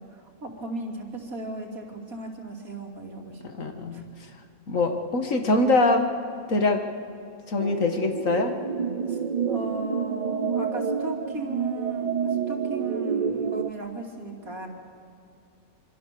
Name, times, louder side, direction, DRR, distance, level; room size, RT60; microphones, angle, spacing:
voice 1, 0.0-3.4 3.9-4.0 9.1-9.2 9.5-14.7, right 2 dB, 85° right, 1 dB, 3.4 m, -36 dB
voice 2, 3.4-4.0 4.7-6.1 6.5-6.8 7.5-8.5, left 2 dB, 70° left, 5 dB, 2.1 m, -23 dB
sound 1, 7.6-13.7, right 6 dB, 40° right, 0.7 m, -28 dB
26.0 x 25.0 x 6.9 m, 2.5 s
omnidirectional pair, 1.4 m